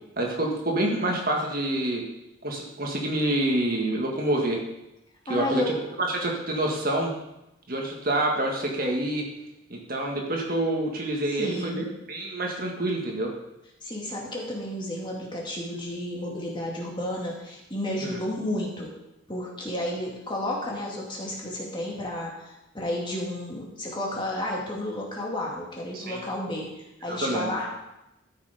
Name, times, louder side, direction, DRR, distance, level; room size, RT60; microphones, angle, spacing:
voice 1, 0.2-2.0 2.4-4.6 5.3-7.1 7.7-9.3 9.7-13.3 18.0-18.2 25.9-26.2 27.1-27.5, right 1 dB, 45° right, 0 dB, 1.8 m, -27 dB
voice 2, 5.3-5.7 11.3-11.9 13.8-18.9 19.3-27.7, left 1 dB, 20° left, -3 dB, 2.2 m, -32 dB
13.5 x 6.7 x 5.1 m, 0.92 s
head